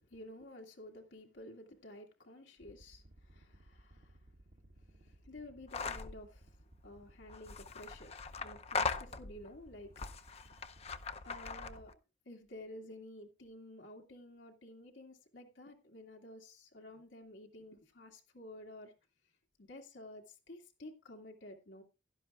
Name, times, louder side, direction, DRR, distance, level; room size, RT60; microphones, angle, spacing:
voice 1, 0.0-4.2 4.8-6.5 6.8-10.9 11.2-12.0 12.3-18.9 19.6-21.8, left 1 dB, 85° left, 2.0 m, -52 dB
sound 1, 2.6-11.3, right 1 dB, 50° right, 1.2 m, -61 dB
sound 2, 5.7-6.2 7.3-9.5 10.0-11.9, left 4 dB, 35° left, 0.6 m, -39 dB
16.0 x 12.0 x 2.4 m
head